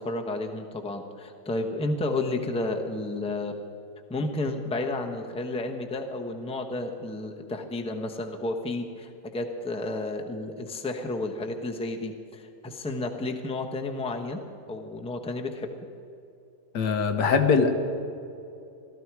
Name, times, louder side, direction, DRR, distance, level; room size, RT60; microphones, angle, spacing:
voice 1, 0.0-3.6 4.1-14.4 14.7-15.7, left 2 dB, 5° left, 3 dB, 0.8 m, -31 dB
voice 2, 16.7-17.7, left 5 dB, 90° left, 5 dB, 1.8 m, -22 dB
17.5 x 13.5 x 4.7 m, 2.7 s
omnidirectional pair, 1.7 m